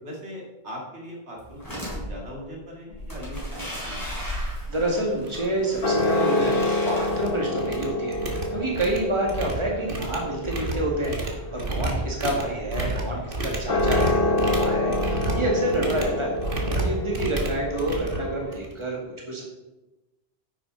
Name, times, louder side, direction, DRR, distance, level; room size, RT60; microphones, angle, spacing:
voice 1, 0.0-4.1, equal, 85° right, -3 dB, 2.9 m, -40 dB
sound 1, 1.4-2.0 2.9-7.4, equal, 20° left, 3.7 m, -35 dB
voice 2, 4.3-11.2 11.5-16.3 16.8-19.0 19.3-19.4, right 1 dB, 25° right, -2 dB, 2.2 m, -28 dB
sound 2, 4.7-4.8 5.2-5.5 5.7-6.1 6.4-7.3 7.6-18.8, right 2 dB, 50° right, 1.8 m, -31 dB
sound 3, 4.8-18.6, left 1 dB, 55° left, 1.8 m, -28 dB
10.0 x 8.7 x 4.0 m, 1.0 s
omnidirectional pair, 1.1 m